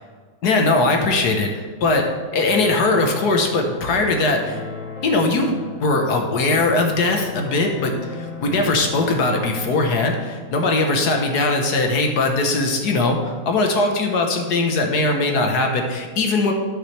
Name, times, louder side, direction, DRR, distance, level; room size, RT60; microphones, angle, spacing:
voice 1, 0.4-4.6 5.0-16.5, left 2 dB, 60° left, 3 dB, 1.5 m, -20 dB
sound 1, 2.5-10.5, left 4 dB, 75° left, 1.7 m, -36 dB
12.5 x 6.0 x 3.3 m, 1.5 s
omnidirectional pair, 2.1 m